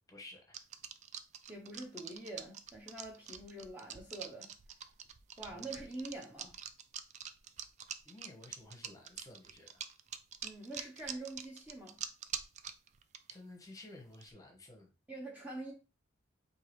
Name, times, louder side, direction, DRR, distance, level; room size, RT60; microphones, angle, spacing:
voice 1, 0.1-0.6 5.5-5.8 8.0-9.8 13.3-14.9, left 2 dB, 15° left, 1.0 m, -53 dB
sound 1, 0.5-13.3 14.1-14.3, right 8 dB, 35° right, 0.3 m, -44 dB
voice 2, 1.5-4.5 5.4-6.6 10.4-12.0 15.1-15.7, right 2 dB, 10° right, 0.7 m, -45 dB
4.6 x 2.8 x 3.1 m
head